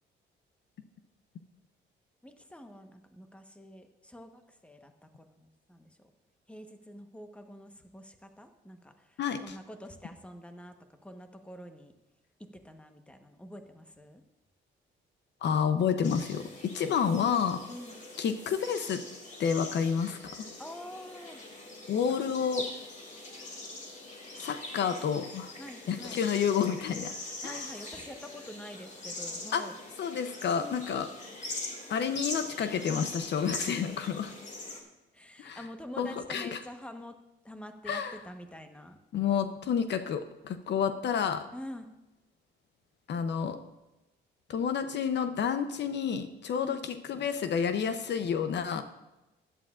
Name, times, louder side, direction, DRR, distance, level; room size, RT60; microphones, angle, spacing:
voice 1, 2.2-6.1 6.5-11.9 12.5-14.2 17.7-18.1 20.6-21.4 22.2-22.4 25.6-26.2 27.4-29.8 30.5-31.1 35.1-37.2 37.4-39.0 41.5-41.9 46.6-46.8, equal, 5° left, 6 dB, 1.1 m, -46 dB
voice 2, 9.2-9.6 15.4-17.6 18.2-19.0 19.4-20.5 21.9-22.6 24.4-25.5 25.9-27.1 27.4-27.6 29.5-29.6 30.0-31.1 31.9-34.3 35.4-35.6 36.0-36.6 37.9-38.2 39.1-41.5 43.1-43.6 44.5-48.8, left 7 dB, 60° left, 9 dB, 0.7 m, -30 dB
sound 1, 16.0-34.8, left 2 dB, 40° left, 2.3 m, -42 dB
16.0 x 11.0 x 2.5 m, 1.0 s
cardioid pair, 90°, 20 cm